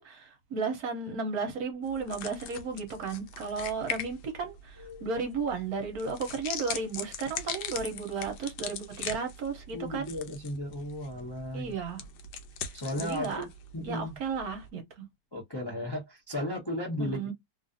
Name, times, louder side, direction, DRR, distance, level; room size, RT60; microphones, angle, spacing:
voice 1, 0.0-10.1 11.5-12.0 13.0-13.5 13.8-15.0 17.0-17.3, right 5 dB, 60° right, 1.1 m, -34 dB
sound 1, 1.8-14.7, left 7 dB, 90° left, 1.4 m, -41 dB
voice 2, 9.7-11.7 12.7-14.2 15.3-17.3, left 1 dB, 30° left, 0.4 m, -35 dB
3.1 x 2.4 x 2.5 m
omnidirectional pair, 2.0 m